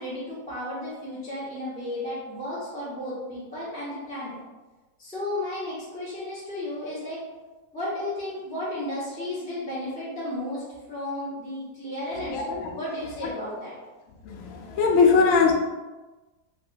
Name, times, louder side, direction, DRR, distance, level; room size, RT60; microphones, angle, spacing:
voice 1, 0.0-4.4 5.0-7.2 7.7-10.6 10.9-13.7, left 1 dB, 5° left, -11 dB, 0.7 m, -33 dB
voice 2, 12.3-12.6 14.2-15.5, left 5 dB, 70° left, 1 dB, 0.8 m, -20 dB
3.4 x 2.8 x 2.5 m, 1.2 s
omnidirectional pair, 1.9 m